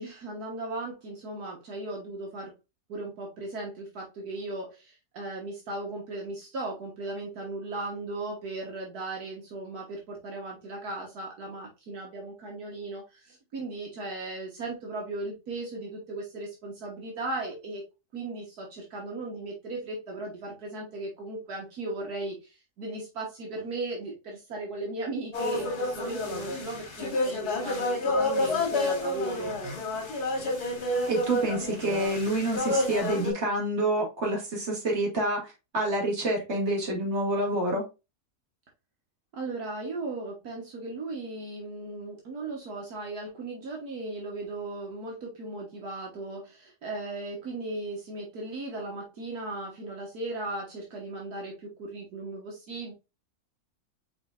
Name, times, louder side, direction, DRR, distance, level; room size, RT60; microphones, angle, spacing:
voice 1, 0.0-2.5 2.9-17.8 18.1-29.6 39.3-52.9, right 2 dB, 75° right, -1 dB, 1.8 m, -37 dB
sound 1, 25.3-33.3, left 2 dB, 85° left, 1.9 m, -29 dB
voice 2, 31.1-37.8, right 1 dB, 45° right, -2 dB, 2.2 m, -28 dB
5.0 x 4.0 x 2.5 m, 0.26 s
omnidirectional pair, 1.6 m